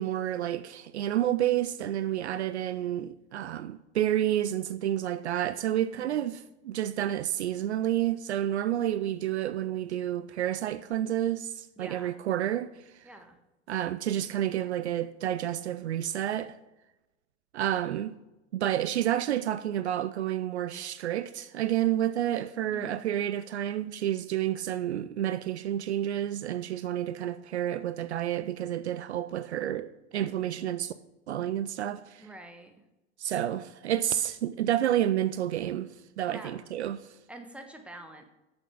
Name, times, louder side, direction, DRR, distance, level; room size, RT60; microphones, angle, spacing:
voice 1, 0.0-12.7 13.0-13.1 13.7-16.6 17.5-18.2 18.5-30.9 31.3-32.3 33.2-37.1, right 12 dB, 65° right, 0.5 m, -30 dB
voice 2, 5.7-6.2 11.8-12.1 13.0-13.4 22.7-23.1 32.2-32.7 36.3-36.6 37.3-38.2, right 1 dB, 5° right, 1.3 m, -46 dB
9.6 x 6.8 x 5.8 m
figure-of-eight pair, 80°, 35 cm